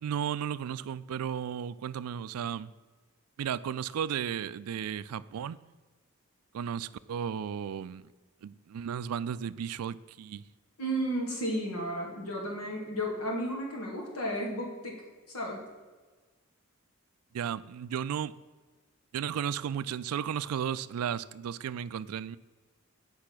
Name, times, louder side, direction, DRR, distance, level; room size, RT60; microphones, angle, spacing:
voice 1, 0.0-2.7 3.4-5.6 6.5-8.0 8.4-10.4 17.3-18.3 19.1-22.4, right 8 dB, 85° right, 0.3 m, -34 dB
voice 2, 10.8-15.0 15.3-15.7, equal, 85° left, 2.3 m, -33 dB
8.5 x 5.5 x 6.0 m
head